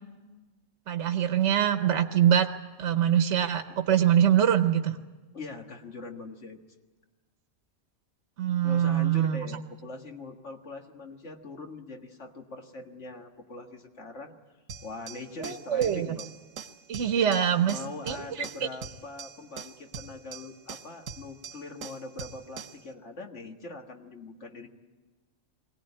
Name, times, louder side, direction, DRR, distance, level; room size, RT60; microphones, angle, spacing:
voice 1, 0.9-2.5 2.8-5.0 8.4-9.5 15.4-16.2 16.9-17.8 18.1-18.2, right 9 dB, 70° right, 7 dB, 1.2 m, -24 dB
voice 2, 5.3-6.6 8.6-14.4 14.8-16.3 17.7-24.7, left 3 dB, 65° left, 3 dB, 2.0 m, -42 dB
sound 1, 14.7-22.9, right 6 dB, 90° right, 1.5 m, -43 dB
22.0 x 17.5 x 9.8 m, 1.2 s
omnidirectional pair, 1.3 m